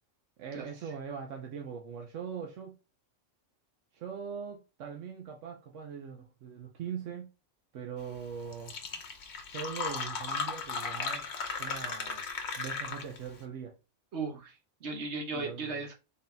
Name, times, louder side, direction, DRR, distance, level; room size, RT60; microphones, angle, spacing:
voice 1, 0.4-2.7 3.9-7.3 7.7-8.7 9.5-11.3 11.6-12.2 12.6-13.7 15.3-15.8, right 7 dB, 85° right, 1.1 m, -41 dB
Fill (with liquid), 8.2-8.3 8.5-13.3, left 5 dB, 65° left, 1.0 m, -36 dB
voice 2, 14.1-15.9, right 3 dB, 65° right, 1.3 m, -37 dB
4.0 x 3.9 x 2.2 m
omnidirectional pair, 1.2 m